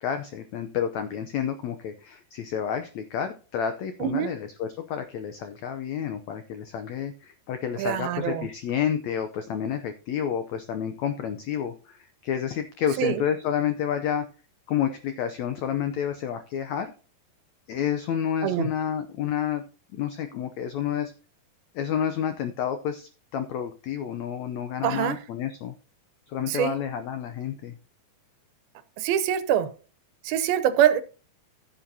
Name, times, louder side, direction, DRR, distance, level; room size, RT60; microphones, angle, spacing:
voice 1, 0.0-14.2 14.7-16.9 17.7-19.6 19.9-21.1 21.7-25.7 26.3-27.8, left 8 dB, 85° left, 1.5 m, -30 dB
voice 2, 4.0-4.3 7.8-8.5 13.0-13.2 18.4-18.7 24.8-25.2 26.5-26.7 29.0-29.7 30.2-31.0, right 10 dB, 85° right, 2.7 m, -24 dB
15.5 x 7.6 x 2.8 m
omnidirectional pair, 4.3 m